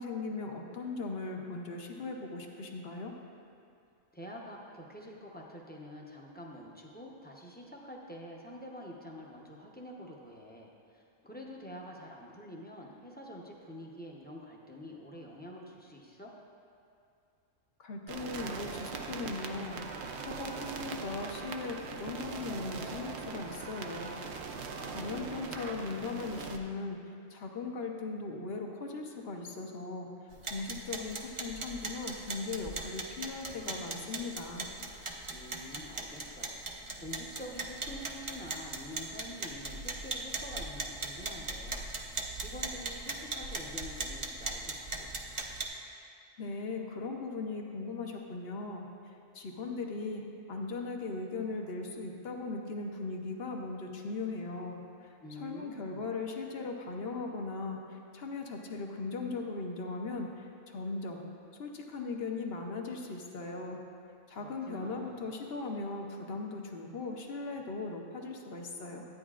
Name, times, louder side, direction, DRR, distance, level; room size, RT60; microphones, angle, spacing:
voice 1, 0.0-3.1 17.8-19.9 20.2-24.2 24.5-30.1 30.5-34.7 46.4-61.2 61.5-63.8 64.3-69.1, left 3 dB, 55° left, 2 dB, 0.9 m, -39 dB
voice 2, 4.1-16.3 24.7-25.6 35.3-41.9 42.1-45.1 55.2-56.0 64.4-65.3, equal, 10° left, -2 dB, 0.6 m, -47 dB
Marcato Copy Radio, 18.1-26.6, right 5 dB, 65° right, 0.8 m, -41 dB
sound 1, 30.3-45.6, right 3 dB, 35° right, 0.5 m, -39 dB
12.5 x 9.1 x 2.4 m, 2.5 s
omnidirectional pair, 1.3 m